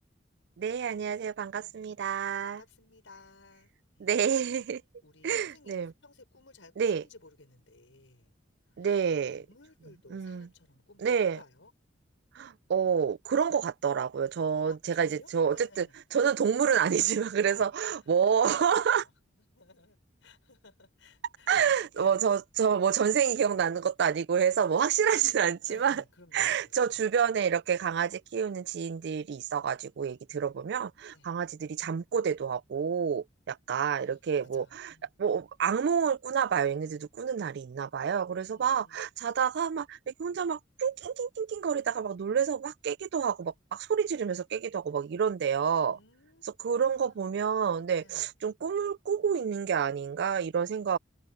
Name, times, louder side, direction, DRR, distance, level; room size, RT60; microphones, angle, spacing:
voice 1, 0.6-2.6 4.0-4.8 5.2-5.9 6.8-7.0 8.8-9.5 10.1-10.5 11.0-11.4 12.4-19.1 21.5-26.0 26.3-34.9 35.2-46.0 46.6-51.0, right 7 dB, 60° right, 0.4 m, -28 dB
voice 2, 2.4-4.5 5.0-8.3 8.7-9.0 9.4-11.7 14.7-16.0 17.5-17.6 18.4-19.1 19.4-22.2 25.7-27.0 31.1-31.3 33.9-34.0 34.5-35.2 38.3-39.0 45.9-47.5 48.0-48.3, left 3 dB, 85° left, 6.0 m, -57 dB
head